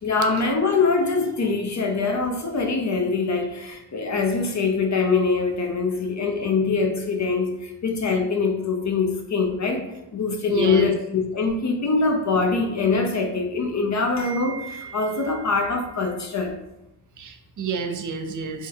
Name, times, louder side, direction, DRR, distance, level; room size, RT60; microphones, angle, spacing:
voice 1, 0.0-16.5, left 4 dB, 40° left, 3 dB, 0.6 m, -23 dB
voice 2, 10.5-10.9 17.2-18.7, right 5 dB, 45° right, 6 dB, 0.4 m, -29 dB
3.5 x 2.3 x 2.6 m, 0.90 s
cardioid pair, 65°, 43 cm